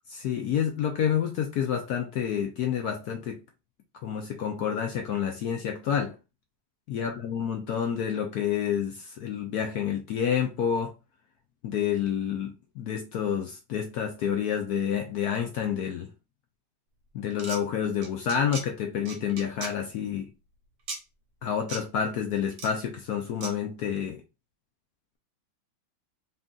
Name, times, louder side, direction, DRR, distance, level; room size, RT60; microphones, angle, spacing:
voice 1, 0.1-3.4 4.0-6.2 6.9-10.9 11.6-16.1 17.1-20.3 21.4-24.2, left 8 dB, 75° left, 0.9 m, -29 dB
sound 1, 17.3-17.6 18.0-18.6 19.0-19.7 20.9-21.0 21.7-21.8 22.5-22.7 23.4-23.5, right 4 dB, 55° right, 1.3 m, -37 dB
3.9 x 2.4 x 3.7 m
omnidirectional pair, 2.3 m